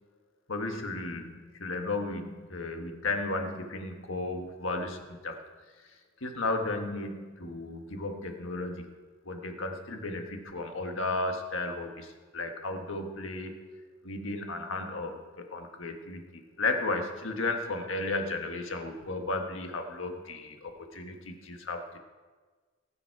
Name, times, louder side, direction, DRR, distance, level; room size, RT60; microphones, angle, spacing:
voice 1, 0.5-5.3 6.2-8.9 9.2-13.5 14.0-22.0, left 2 dB, 85° left, 4 dB, 1.5 m, -34 dB
21.0 x 7.2 x 4.7 m, 1.4 s
head